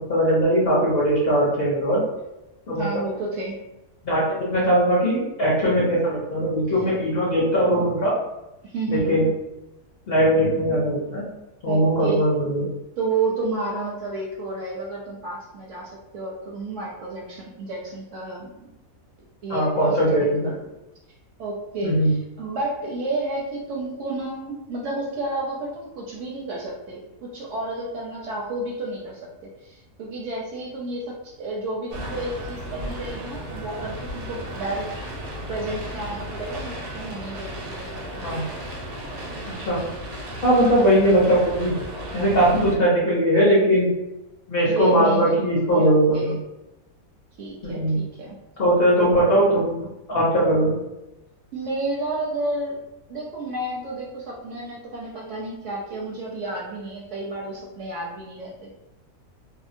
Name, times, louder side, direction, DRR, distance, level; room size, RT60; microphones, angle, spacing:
voice 1, 0.0-2.0 2.7-2.8 4.0-8.2 8.9-9.3 10.1-11.3 11.6-12.6 19.5-20.5 21.8-22.1 38.2-38.4 39.5-39.8 40.4-41.7 42.1-43.9 44.5-46.3 47.6-48.0 48.6-50.8, right 1 dB, 55° left, -6 dB, 0.7 m, -20 dB
voice 2, 2.7-3.6 6.7-6.8 8.6-9.2 11.7-12.2 13.0-18.7 19.4-20.6 21.4-34.9 35.5-38.3 40.6-40.8 44.7-45.4 45.7-46.4 47.4-48.4 51.5-52.8 53.1-58.7, right 2 dB, 65° right, -3 dB, 0.8 m, -31 dB
sound 1, 31.9-42.8, equal, 85° right, 1.1 m, -34 dB
2.7 x 2.0 x 2.5 m, 0.96 s
omnidirectional pair, 1.6 m